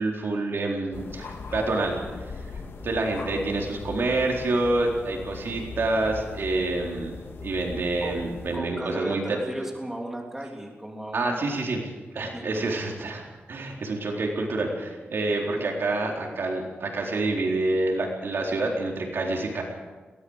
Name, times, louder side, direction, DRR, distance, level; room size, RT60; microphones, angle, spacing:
voice 1, 0.0-2.2 2.5-7.1 7.4-9.2 11.1-11.9 12.1-13.2 13.5-19.6, right 2 dB, 70° right, 0 dB, 4.1 m, -27 dB
sound 1, 0.9-8.6, left 4 dB, 80° left, 2.4 m, -39 dB
voice 2, 8.5-11.4 12.2-12.9, right 1 dB, 10° right, 0 dB, 3.3 m, -36 dB
22.0 x 18.0 x 6.5 m, 1.3 s
wide cardioid pair, 115°, 4 cm